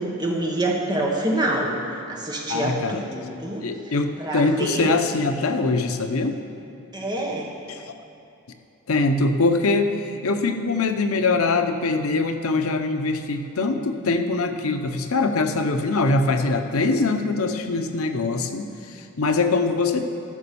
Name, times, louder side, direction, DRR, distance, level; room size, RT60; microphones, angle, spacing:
voice 1, 0.0-1.7 2.1-3.7 4.2-4.9 6.9-7.5, right 1 dB, 20° right, -1 dB, 1.4 m, -26 dB
voice 2, 2.5-3.0 3.6-6.4 7.7-7.8 8.9-20.0, left 3 dB, 85° left, 7 dB, 0.8 m, -23 dB
14.0 x 6.0 x 7.0 m, 2.9 s
head